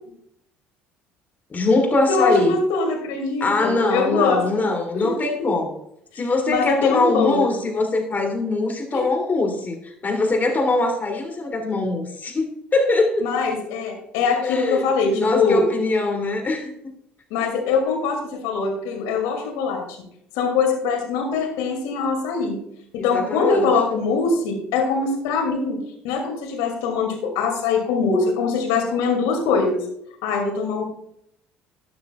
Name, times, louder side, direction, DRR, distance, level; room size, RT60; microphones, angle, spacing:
voice 1, 1.5-2.6 3.4-5.8 6.1-13.3 14.3-16.7 23.0-23.7, left 2 dB, 30° left, 3.0 m, -22 dB
voice 2, 2.1-4.4 4.9-5.1 6.5-7.4 8.9-9.0 13.2-15.6 17.3-20.0 20.3-22.6 22.9-29.8 30.2-30.8, left 4 dB, 70° left, 2.5 m, -22 dB
12.5 x 9.8 x 2.4 m
hypercardioid pair, 60°, 6 cm